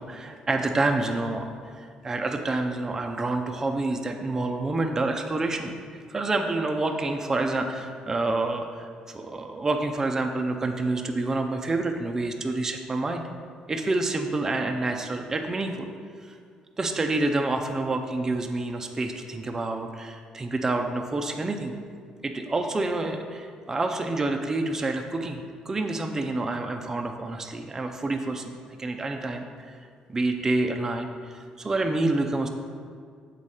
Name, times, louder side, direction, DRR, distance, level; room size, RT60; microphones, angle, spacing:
voice 1, 0.0-1.5 1.8-13.2 13.7-15.9 16.2-16.4 16.8-21.7 22.2-29.4 30.1-32.5, right 2 dB, 20° right, 4 dB, 0.4 m, -28 dB
7.0 x 4.2 x 4.8 m, 2.1 s
cardioid pair, 125°, 2 cm